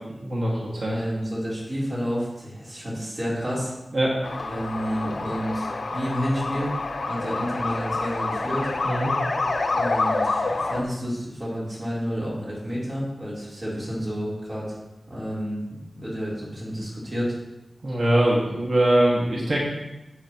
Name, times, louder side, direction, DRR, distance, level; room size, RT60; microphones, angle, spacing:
voice 1, 0.2-1.0 3.9-4.2 8.8-9.1 17.8-19.6, right 1 dB, 60° right, -5 dB, 1.9 m, -22 dB
voice 2, 0.8-3.7 4.4-6.7 7.0-8.6 9.7-14.7 15.1-15.6 15.9-17.4, equal, 35° right, -6 dB, 3.3 m, -30 dB
sound 1, 4.2-10.8, left 3 dB, 75° left, 0.8 m, -27 dB
9.4 x 7.9 x 2.9 m, 0.99 s
wide cardioid pair, 95°, 0 cm